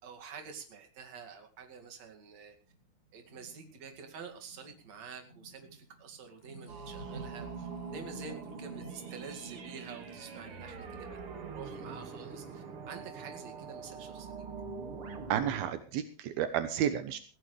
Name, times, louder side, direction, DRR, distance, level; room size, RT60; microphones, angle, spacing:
voice 1, 0.0-2.5 3.1-11.2 11.5-14.4, right 5 dB, 45° right, 4 dB, 2.6 m, -48 dB
sound 1, 2.7-12.8, right 2 dB, 60° left, 6.6 m, -52 dB
sound 2, 6.7-15.7, right 5 dB, 60° right, 1.4 m, -44 dB
voice 2, 15.3-17.2, right 10 dB, 80° right, 10 dB, 2.1 m, -31 dB
20.5 x 15.5 x 3.3 m, 0.36 s
omnidirectional pair, 5.7 m